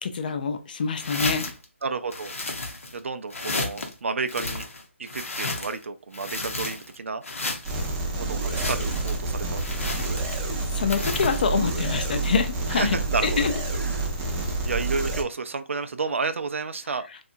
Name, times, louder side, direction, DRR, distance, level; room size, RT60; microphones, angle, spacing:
voice 1, 0.0-1.5 10.7-13.0 13.2-13.5, left 5 dB, 40° left, 0.4 m, -25 dB
sound 1, 1.0-1.6 2.1-3.0 3.3-3.9 4.3-5.8 6.1-7.0 7.2-7.9 8.4-9.2 9.6-10.5 10.9-11.5, left 2 dB, 85° left, 0.8 m, -32 dB
voice 2, 1.8-2.3 2.9-4.6 5.0-7.2 8.2-9.9 12.7-13.4 13.7-14.0 14.6-17.1, right 4 dB, 70° right, 0.4 m, -31 dB
sound 2, 7.6-15.2, right 3 dB, 15° right, 0.5 m, -28 dB
2.7 x 2.3 x 2.6 m
hypercardioid pair, 160°, 7 cm